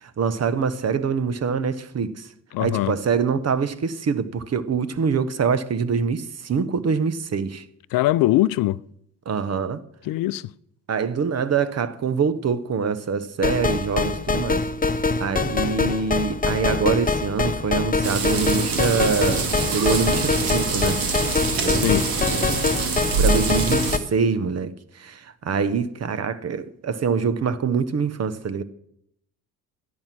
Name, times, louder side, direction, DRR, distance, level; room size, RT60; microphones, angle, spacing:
voice 1, 0.0-2.3 2.6-7.6 9.2-9.8 10.9-14.6 15.2-21.0 21.6-22.6 23.2-28.6, right 6 dB, 45° right, 1.2 m, -25 dB
voice 2, 2.5-2.9 7.9-8.8 10.1-10.4 21.8-22.0, left 16 dB, 70° left, 0.5 m, -21 dB
sound 1, 13.4-24.0, left 3 dB, 25° left, 1.0 m, -24 dB
sound 2, 18.0-24.0, right 4 dB, 70° right, 2.5 m, -25 dB
13.0 x 10.5 x 6.0 m
supercardioid pair, 65°, 35 cm